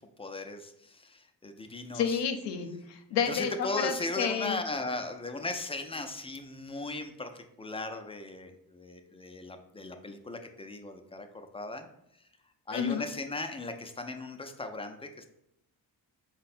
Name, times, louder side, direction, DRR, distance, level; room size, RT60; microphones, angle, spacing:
voice 1, 0.2-2.2 3.3-11.9 12.2-12.3 12.7-15.3, left 2 dB, 15° left, 6 dB, 0.4 m, -37 dB
voice 2, 1.9-4.6 12.7-13.0, left 7 dB, 85° left, 7 dB, 0.6 m, -30 dB
4.6 x 2.2 x 4.1 m, 0.77 s
cardioid pair, 80°, 41 cm